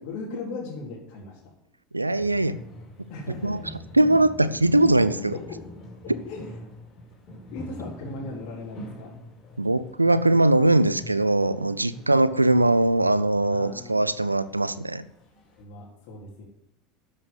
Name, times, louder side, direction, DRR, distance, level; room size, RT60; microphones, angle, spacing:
voice 1, 0.0-1.5 1.9-2.0 3.1-3.8 5.3-5.6 6.0-6.6 7.5-9.1 11.9-12.1 13.5-13.9 15.6-16.4, left 3 dB, 55° left, -5 dB, 4.1 m, -38 dB
voice 2, 1.9-2.5 3.4-3.6 3.9-5.3 9.6-15.0, right 2 dB, 90° right, 16 dB, 0.6 m, -21 dB
sound 1, 2.1-15.6, left 1 dB, 35° left, 5.1 m, -44 dB
12.5 x 7.7 x 8.1 m, 0.77 s
figure-of-eight pair, 75°, 0 cm